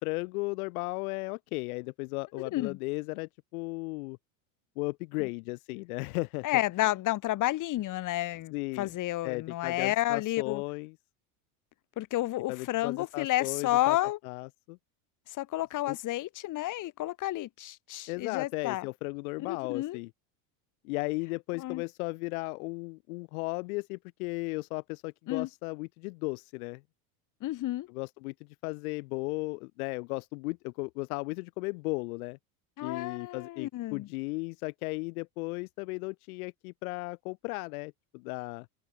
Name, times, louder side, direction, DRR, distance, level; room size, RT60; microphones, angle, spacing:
voice 1, 0.0-4.2 4.8-6.6 8.5-8.9 9.2-10.9 12.5-14.0 14.2-14.8 15.9-16.0 18.1-20.1 20.8-26.8 27.9-28.3 28.6-32.4 32.8-38.7, left 26 dB, 70° left, 2.1 m, -35 dB
voice 2, 6.4-10.6 12.0-14.2 15.3-18.9 19.4-20.0 21.6-21.8 25.3-25.5 27.4-27.9 32.8-34.1, left 15 dB, 40° left, 2.9 m, -31 dB
open air
supercardioid pair, 125°, 45 cm